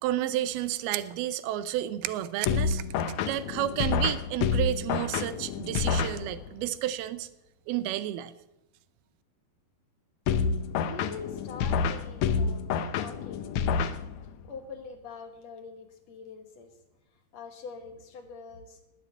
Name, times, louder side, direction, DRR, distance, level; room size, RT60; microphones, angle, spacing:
voice 1, 0.0-2.8 3.3-7.3 7.7-8.3, right 13 dB, 90° right, 13 dB, 2.7 m, -31 dB
sound 1, 2.5-6.7 10.3-14.5, left 6 dB, 75° left, 1.7 m, -29 dB
voice 2, 10.8-12.7 12.9-13.5 14.5-16.7 17.3-18.8, left 5 dB, 55° left, 6 dB, 2.3 m, -43 dB
20.0 x 8.0 x 8.2 m, 0.91 s
omnidirectional pair, 4.3 m